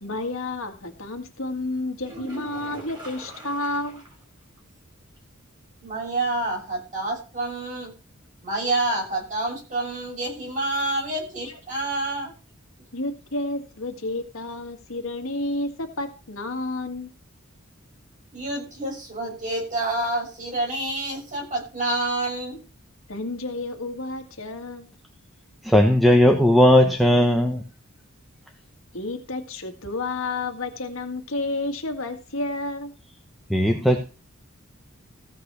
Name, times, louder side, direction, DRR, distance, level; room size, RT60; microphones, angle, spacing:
voice 1, 0.0-4.0 12.9-17.1 23.1-24.9 28.9-32.9, left 2 dB, 70° left, 5 dB, 1.9 m, -30 dB
sound 1, 2.0-4.2 4.6-4.7 5.1-5.2 9.0-9.1, right 1 dB, 20° right, 4.5 m, -41 dB
voice 2, 5.8-7.9 8.4-12.3 18.3-22.6, right 2 dB, 35° right, -1 dB, 7.4 m, -28 dB
voice 3, 25.6-27.6 33.5-34.0, left 1 dB, ahead, 3 dB, 1.0 m, -17 dB
15.5 x 5.4 x 6.7 m, 0.33 s
head